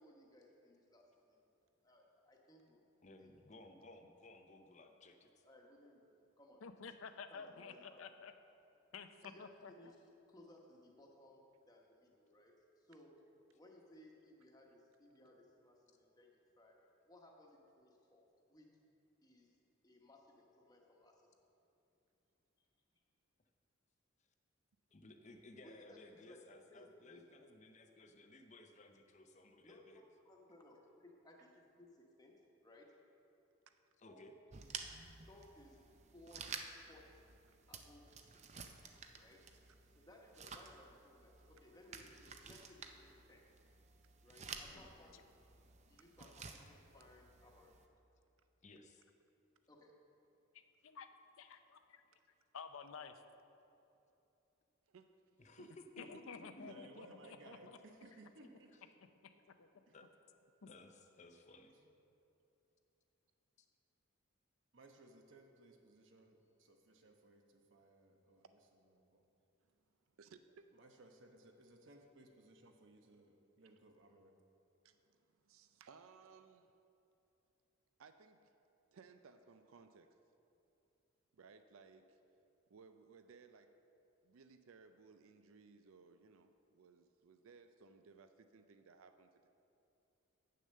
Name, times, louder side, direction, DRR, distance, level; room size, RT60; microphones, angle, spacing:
voice 1, 0.0-1.5 1.8-2.9 3.2-3.3 5.4-6.7 7.3-8.0 9.2-10.0 10.3-13.2 13.5-18.7 19.2-19.6 19.8-21.4 25.6-26.4 26.7-27.3 29.6-32.3 32.6-32.9 34.1-34.3 34.6-34.9 35.2-35.8 36.1-36.6 36.9-37.2 37.7-38.7 39.1-39.5 40.0-43.5 44.2-45.2 45.9-47.7 49.7-50.0, left 1 dB, 20° left, 0 dB, 1.0 m, -62 dB
voice 2, 3.0-5.4 24.9-30.0 34.0-34.3 44.6-44.9 48.6-49.0 55.4-56.0 56.3-56.8 58.4-58.5 59.9-60.1 60.6-61.7 63.6-63.7, left 2 dB, 35° left, 5 dB, 0.5 m, -59 dB
voice 3, 6.6-8.3 8.9-9.9 50.5-51.1 51.4-52.0 52.5-53.1 56.0-57.8 59.2-59.3 59.6-59.7 60.6-60.7, left 5 dB, 80° left, 9 dB, 0.5 m, -52 dB
sound 1, 34.5-47.9, right 5 dB, 35° right, 0.5 m, -53 dB
voice 4, 54.9-55.2 55.5-55.7 56.1-56.2 56.7-56.8 68.4-68.5 69.6-70.7 74.8-76.7 78.0-78.6 78.9-80.2 81.3-82.2 82.7-83.8 84.2-89.5, right 5 dB, 85° right, 9 dB, 0.4 m, -62 dB
voice 5, 56.6-58.9 59.9-60.0 61.7-61.9 64.7-69.2 70.7-74.3, right 2 dB, 65° right, 3 dB, 1.0 m, -62 dB
8.6 x 6.5 x 6.5 m, 2.9 s
head